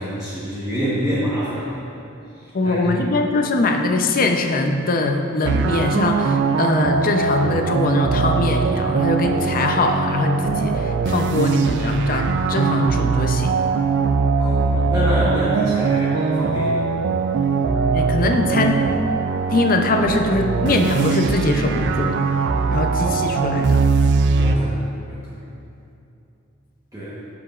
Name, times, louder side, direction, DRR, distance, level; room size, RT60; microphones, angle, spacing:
voice 1, 0.0-1.9 2.3-3.0 14.4-16.8 17.4-17.5 18.0-18.1 24.3-25.4 26.9-27.2, equal, 15° right, -10 dB, 1.0 m, -27 dB
voice 2, 2.5-13.5 17.9-18.8 19.5-22.2 22.7-23.8, left 2 dB, 40° left, 4 dB, 0.5 m, -21 dB
sound 1, 5.4-24.6, right 5 dB, 55° right, 0.3 m, -21 dB
12.5 x 5.1 x 2.4 m, 2.7 s
head